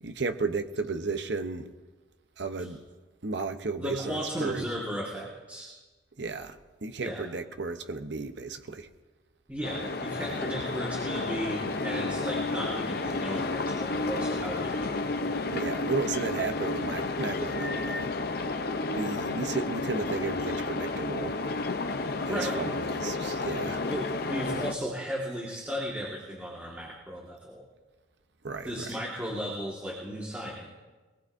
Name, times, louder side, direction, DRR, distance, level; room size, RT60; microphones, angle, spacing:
voice 1, 0.0-1.7 2.4-2.8 3.2-4.6 6.2-6.6 6.8-8.9 15.5-18.1 18.9-21.4 22.3-23.8 28.4-28.7, right 4 dB, 65° right, 0.9 m, -33 dB
voice 2, 3.8-5.7 7.0-7.3 9.5-15.0 22.2-22.7 23.9-27.6 28.6-30.8, equal, 10° right, 1.8 m, -35 dB
sound 1, 9.6-24.7, left 3 dB, 55° left, 0.7 m, -31 dB
22.5 x 19.0 x 2.7 m
head